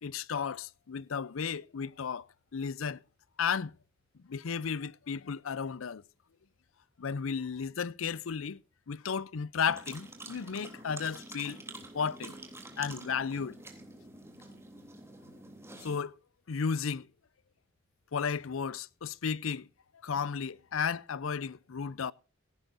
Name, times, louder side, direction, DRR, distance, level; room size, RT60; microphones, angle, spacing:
voice 1, 0.0-2.3 2.5-3.0 3.4-3.7 4.3-6.0 7.0-8.6 8.9-11.6 11.9-12.3 12.8-13.6 15.8-16.2 16.5-17.1 18.1-19.7 20.0-22.1, left 6 dB, 80° left, 0.6 m, -34 dB
sound 1, 9.7-16.0, right 2 dB, 15° right, 3.1 m, -48 dB
17.5 x 16.0 x 2.6 m
head